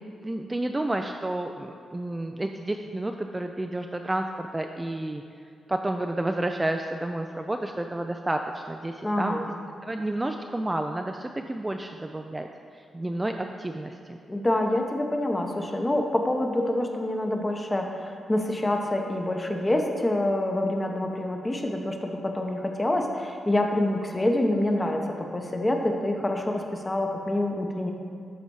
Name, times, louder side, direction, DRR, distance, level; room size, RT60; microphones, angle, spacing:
voice 1, 0.2-5.2 5.7-9.4 9.8-12.5 12.8-14.2, right 1 dB, 15° right, 4 dB, 0.3 m, -30 dB
voice 2, 9.0-9.4 14.3-27.9, left 1 dB, 20° left, 3 dB, 0.9 m, -26 dB
12.0 x 4.1 x 4.7 m, 2.4 s
cardioid pair, 105°, 0 cm